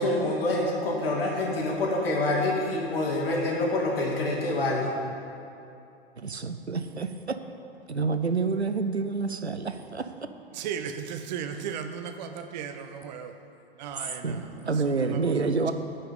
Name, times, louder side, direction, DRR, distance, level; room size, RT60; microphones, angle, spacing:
voice 1, 0.0-4.9, left 2 dB, 65° left, 2.3 m, -26 dB
voice 2, 6.2-7.4 7.9-10.1 14.2-15.7, right 4 dB, 90° right, 0.7 m, -28 dB
voice 3, 10.6-13.3 13.8-14.3 14.8-15.7, right 7 dB, 45° right, 0.8 m, -36 dB
10.5 x 5.6 x 8.3 m
figure-of-eight pair, 100°, 32 cm